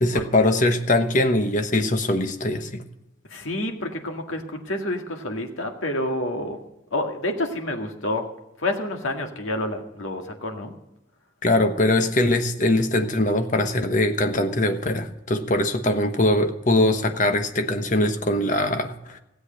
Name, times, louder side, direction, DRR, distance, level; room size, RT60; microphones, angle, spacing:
voice 1, 0.0-2.8 11.4-19.2, left 1 dB, 40° left, 7 dB, 1.1 m, -22 dB
voice 2, 3.3-6.6 6.9-8.3 8.6-10.8, left 1 dB, 90° left, 3 dB, 2.0 m, -28 dB
16.0 x 8.1 x 6.5 m, 0.93 s
head